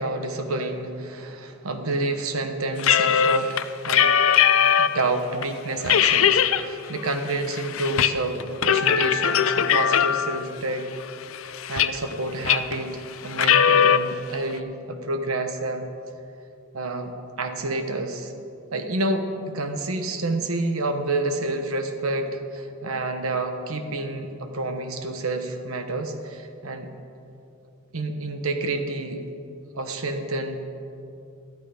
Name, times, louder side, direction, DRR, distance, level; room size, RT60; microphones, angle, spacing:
voice 1, 0.0-4.2 4.8-10.9 11.4-15.9 16.7-18.3 18.7-26.9 27.9-29.2 29.7-30.6, right 2 dB, 75° right, 6 dB, 1.1 m, -29 dB
sound 1, 2.8-5.0 5.4-5.5 5.9-6.6 7.0-8.1 8.4-10.5 11.0-12.1 12.5-12.8 13.3-14.0, left 8 dB, 65° left, 0.5 m, -20 dB
13.5 x 11.5 x 5.1 m, 2.6 s
head